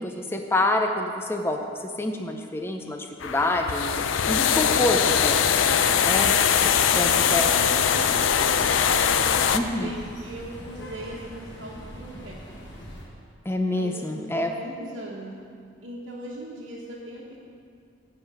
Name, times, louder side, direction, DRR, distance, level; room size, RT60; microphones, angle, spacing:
voice 1, 0.0-1.6 2.0-3.9 4.3-5.4 6.0-6.3 6.9-7.5 9.5-9.9 13.5-14.5, left 2 dB, 10° left, 3 dB, 0.5 m, -26 dB
sound 1, 3.2-9.6, left 8 dB, 85° left, 0.5 m, -21 dB
voice 2, 4.3-5.4 6.6-12.4 13.7-15.3 15.8-17.5, right 1 dB, 80° right, -7 dB, 1.3 m, -40 dB
sound 2, 6.4-13.1, equal, 60° left, 1.6 m, -42 dB
10.5 x 4.9 x 7.6 m, 2.4 s
head